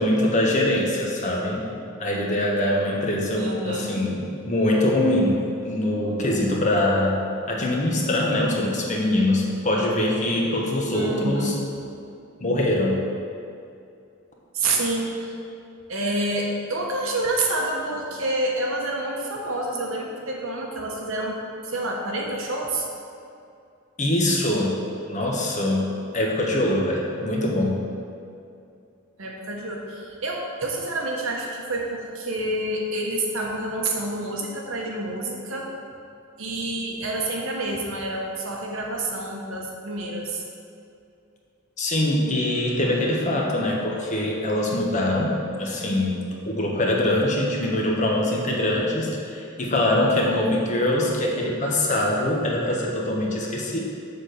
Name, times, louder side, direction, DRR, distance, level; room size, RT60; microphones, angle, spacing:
voice 1, 0.0-1.6 2.0-5.4 5.6-7.2 7.5-11.5 12.4-13.0 24.0-24.7 25.1-27.8 41.8-46.2 46.5-53.8, left 1 dB, 35° left, -2 dB, 1.1 m, -23 dB
voice 2, 3.4-3.9 10.9-11.5 14.5-15.3 15.9-21.3 21.6-22.9 29.2-35.7 36.4-40.5, right 2 dB, 70° right, -1 dB, 1.2 m, -28 dB
7.1 x 4.3 x 6.6 m, 2.5 s
head